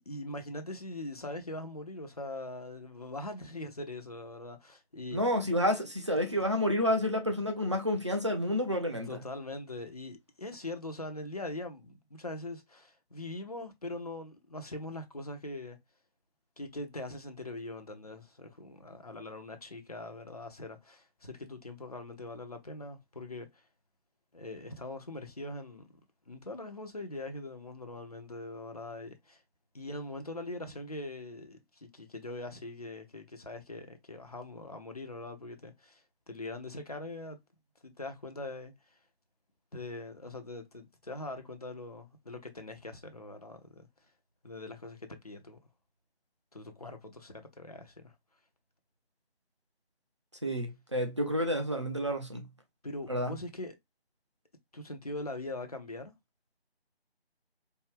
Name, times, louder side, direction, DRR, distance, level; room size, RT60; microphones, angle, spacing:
voice 1, 0.0-5.2 6.2-6.4 9.0-15.8 16.6-23.6 24.3-25.9 26.3-29.4 29.7-37.4 37.8-38.7 39.7-43.9 44.4-45.6 46.5-48.1 52.8-53.8 54.7-56.1, left 2 dB, 35° left, 0.7 m, -42 dB
voice 2, 5.1-9.2 50.4-52.5 53.1-53.3, equal, 30° right, 0.6 m, -29 dB
4.3 x 2.2 x 3.4 m
figure-of-eight pair, 160°, 32 cm